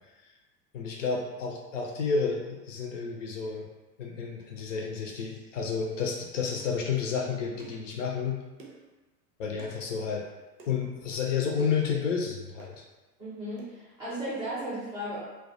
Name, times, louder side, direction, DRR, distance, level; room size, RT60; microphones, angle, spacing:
voice 1, 0.7-3.7 4.0-8.4 9.4-10.2 10.7-12.8, left 5 dB, 50° left, 0 dB, 0.5 m, -31 dB
sound 1, 6.6-6.8 7.6-7.9 8.6-8.9 9.6-9.8 10.6-10.8 11.6-11.9 12.6-12.8 13.6-13.7, right 3 dB, 80° right, 0.7 m, -49 dB
voice 2, 13.2-15.2, right 1 dB, 10° right, -12 dB, 0.4 m, -35 dB
2.2 x 2.1 x 2.6 m, 1.2 s
figure-of-eight pair, 90°, 50 cm